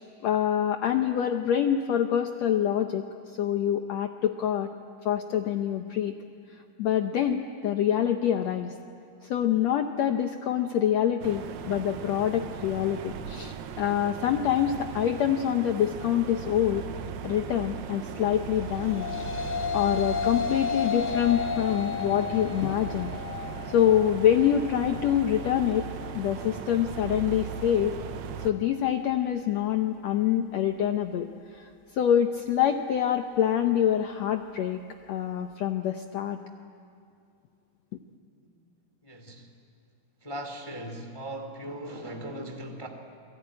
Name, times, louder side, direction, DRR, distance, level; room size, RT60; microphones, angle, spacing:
voice 1, 0.0-3.0 3.4-4.7 5.0-6.1 6.8-8.7 9.2-16.8 17.2-19.1 19.7-23.1 23.7-25.9 26.1-28.0 28.4-31.3 31.5-34.8 35.1-36.4, left 10 dB, 80° left, 6 dB, 1.5 m, -26 dB
sound 1, 11.2-28.5, right 8 dB, 75° right, 2.8 m, -38 dB
sound 2, 18.5-27.7, left 6 dB, 35° left, 1.2 m, -34 dB
voice 2, 39.0-39.4 40.2-42.9, right 1 dB, 15° left, 5 dB, 1.3 m, -38 dB
28.5 x 21.5 x 9.7 m, 2.4 s
omnidirectional pair, 4.2 m